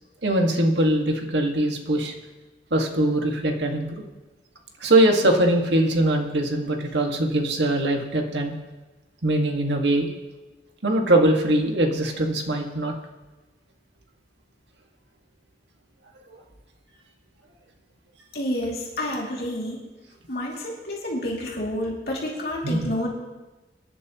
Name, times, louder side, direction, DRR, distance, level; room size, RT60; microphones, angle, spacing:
voice 1, 0.2-2.1 2.7-3.9 4.8-8.5 9.2-10.1 10.8-12.9 22.6-23.1, right 1 dB, 80° right, 2 dB, 2.0 m, -22 dB
voice 2, 18.3-19.8 20.3-23.1, left 1 dB, 60° left, -3 dB, 2.8 m, -29 dB
25.0 x 11.0 x 3.1 m, 1.2 s
head